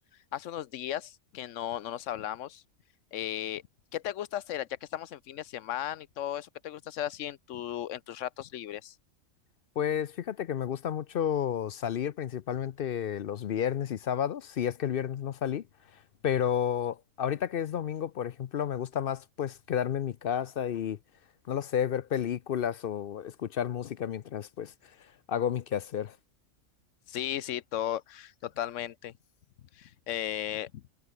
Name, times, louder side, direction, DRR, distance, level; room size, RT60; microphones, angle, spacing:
voice 1, 0.3-2.6 3.1-3.6 3.9-8.9 27.1-29.1 29.8-30.8, left 11 dB, 75° left, 1.0 m, -36 dB
voice 2, 9.8-15.6 16.2-21.0 21.5-24.7 25.3-26.2, left 9 dB, 55° left, 0.7 m, -31 dB
omnidirectional pair, 1.4 m